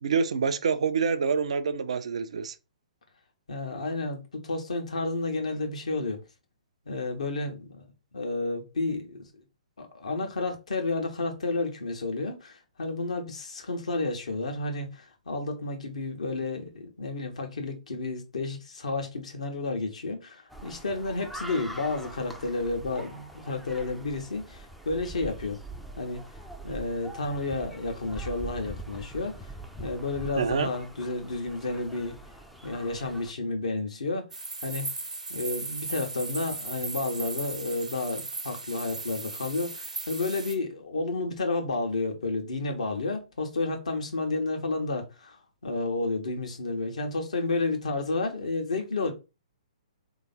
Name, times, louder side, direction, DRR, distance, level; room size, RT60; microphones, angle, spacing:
voice 1, 0.0-2.5 30.4-30.7, right 5 dB, 60° right, 0.5 m, -26 dB
voice 2, 3.5-6.2 6.9-7.9 8.1-9.3 9.8-25.6 26.0-26.2 26.6-29.5 29.8-32.2 32.6-34.3 34.6-34.9 35.3-49.1, left 3 dB, 65° left, 1.2 m, -31 dB
sound 1, 20.5-33.3, right 2 dB, ahead, 0.5 m, -43 dB
sound 2, 34.3-40.6, right 3 dB, 75° right, 0.9 m, -37 dB
3.4 x 3.0 x 4.1 m
figure-of-eight pair, 120°, 4 cm